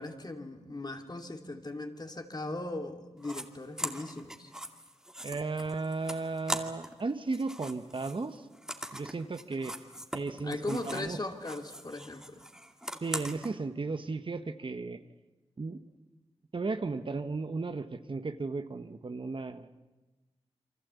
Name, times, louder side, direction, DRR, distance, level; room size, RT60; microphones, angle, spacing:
voice 1, 0.0-4.5 10.4-12.4, left 2 dB, 40° left, 5 dB, 2.9 m, -38 dB
Open closing cardboard, 3.2-3.4 3.8-7.0 7.3-11.1 11.4-13.5, equal, 5° right, 2.4 m, -41 dB
voice 2, 5.2-8.5 8.9-9.7 10.1-11.2 13.0-15.0 15.6-15.8 16.5-19.7, right 3 dB, 50° right, 9 dB, 1.3 m, -35 dB
28.5 x 24.0 x 8.4 m, 1.1 s
wide cardioid pair, 70°, 11 cm